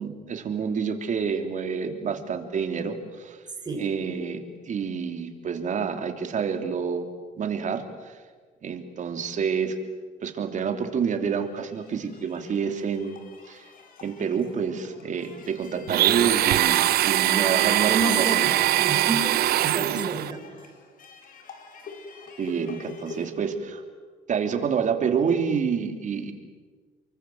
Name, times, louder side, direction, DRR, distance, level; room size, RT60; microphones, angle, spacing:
voice 1, 0.0-3.4 3.8-7.1 7.4-8.2 8.6-9.8 10.2-13.2 13.5-13.6 14.0-18.4 19.8-19.9 22.4-23.8 24.3-26.3, right 6 dB, 45° right, 6 dB, 3.2 m, -28 dB
sound 1, 10.9-23.3, left 4 dB, 55° left, 4.8 m, -46 dB
Domestic sounds home sounds, 15.9-20.3, right 14 dB, 65° right, 0.7 m, -22 dB
voice 2, 17.9-20.7, right 3 dB, 25° right, 2 dB, 6.9 m, -30 dB
30.0 x 23.5 x 7.9 m, 1.5 s
cardioid pair, 110°, 17 cm